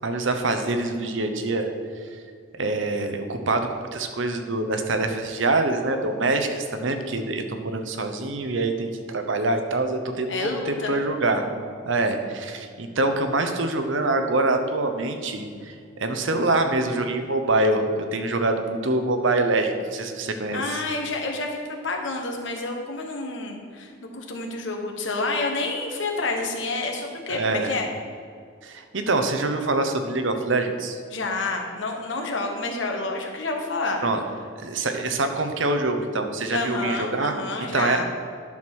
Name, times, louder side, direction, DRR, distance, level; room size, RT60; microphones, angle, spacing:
voice 1, 0.0-1.7 2.6-10.3 10.7-11.5 11.9-15.7 16.0-17.8 18.1-20.8 27.3-27.7 28.6-31.0 34.0-34.2 34.6-38.0, right 2 dB, 65° right, 6 dB, 0.9 m, -25 dB
voice 2, 10.3-11.0 20.5-27.9 31.1-34.0 36.5-38.0, left 3 dB, 60° left, 2 dB, 1.3 m, -29 dB
10.5 x 4.6 x 6.2 m, 2.2 s
head